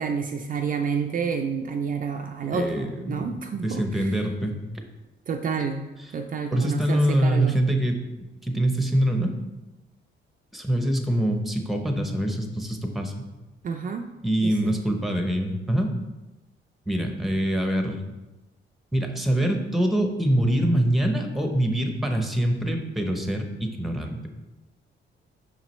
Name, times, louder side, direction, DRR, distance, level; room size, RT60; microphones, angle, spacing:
voice 1, 0.0-4.1 5.3-5.8 6.1-7.6 13.6-14.1 14.4-14.8, right 5 dB, 40° right, 4 dB, 0.4 m, -29 dB
voice 2, 2.5-4.6 6.5-8.0 8.4-9.3 10.5-13.1 14.2-15.9 16.9-18.0 18.9-24.3, right 1 dB, ahead, 3 dB, 0.7 m, -24 dB
7.2 x 5.8 x 3.1 m, 1.1 s
cardioid pair, 155°, 21 cm